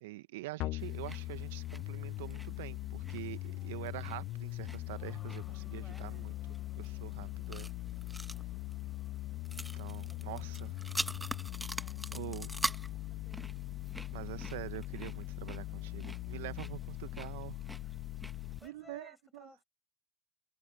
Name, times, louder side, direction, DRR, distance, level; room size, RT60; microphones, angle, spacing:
voice 1, 0.0-6.3 6.8-7.7 9.7-10.7 12.1-12.6 14.1-17.6 18.6-19.5, right 19 dB, 70° right, 1.3 m, -45 dB
sound 1, 0.6-18.6, left 19 dB, 55° left, 0.4 m, -41 dB
sound 2, 0.8-18.7, right 1 dB, 5° right, 1.4 m, -45 dB
voice 2, 3.5-3.9 5.7-6.4 8.3-8.6 10.0-11.0 11.7-12.2 12.6-12.8 13.1-13.5 17.8-19.6, left 3 dB, 15° left, 5.6 m, -61 dB
Race car auto racing, 4.9-19.0, left 8 dB, 35° left, 3.7 m, -66 dB
hypercardioid pair, 75°, 0 cm